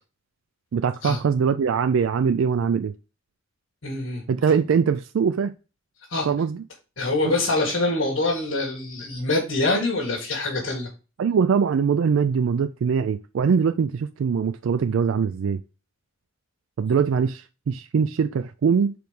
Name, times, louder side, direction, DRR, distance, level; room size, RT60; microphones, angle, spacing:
voice 1, 0.7-2.9 4.3-5.5 6.3-6.6 11.2-15.6 16.8-18.9, right 6 dB, 85° right, 0.4 m, -22 dB
voice 2, 3.8-4.2 6.1-6.3 7.0-10.9, left 2 dB, 85° left, 2.1 m, -25 dB
4.9 x 4.6 x 5.2 m
head